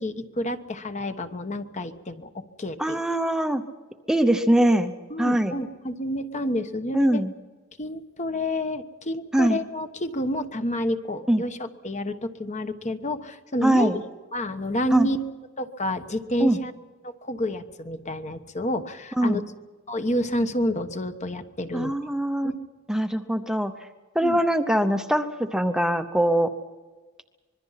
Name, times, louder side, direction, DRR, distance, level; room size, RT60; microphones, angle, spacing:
voice 1, 0.0-3.0 3.5-3.6 5.1-7.2 7.8-14.0 14.3-15.2 15.6-16.7 17.0-19.4 19.9-21.9 22.4-22.6 24.2-24.4, left 1 dB, 35° left, 8 dB, 1.2 m, -29 dB
voice 2, 2.8-3.6 4.1-4.9 5.2-5.5 6.9-7.3 9.3-9.6 11.3-11.4 13.6-14.0 14.9-15.1 16.4-16.6 19.2-19.4 21.7-22.5 22.9-23.7 24.1-26.5, right 1 dB, 5° right, 7 dB, 0.8 m, -22 dB
25.5 x 22.0 x 5.8 m, 1.3 s
head